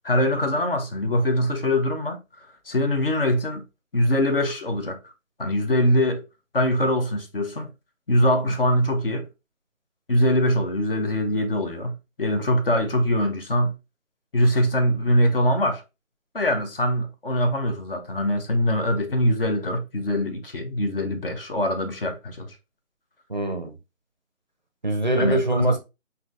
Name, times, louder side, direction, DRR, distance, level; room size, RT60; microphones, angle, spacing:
voice 1, 0.0-2.2 2.7-3.6 3.9-5.0 5.4-6.2 6.5-7.7 8.1-9.3 10.1-13.8 14.3-15.8 16.3-22.6 25.2-25.8, equal, 45° left, 0.7 m, -23 dB
voice 2, 23.3-23.7 24.8-25.8, right 2 dB, 35° right, 0.5 m, -23 dB
5.8 x 2.7 x 2.4 m
figure-of-eight pair, 165°, 40 cm